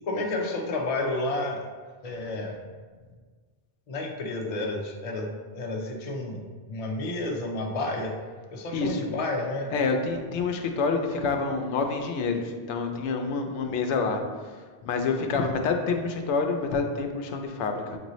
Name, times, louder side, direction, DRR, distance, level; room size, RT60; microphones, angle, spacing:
voice 1, 0.1-1.6 2.0-2.6 3.9-8.1 8.5-9.7, left 2 dB, 40° left, 1 dB, 0.5 m, -31 dB
voice 2, 9.7-18.0, left 4 dB, 90° left, 4 dB, 0.9 m, -28 dB
6.7 x 2.6 x 3.0 m, 1.5 s
omnidirectional pair, 1.2 m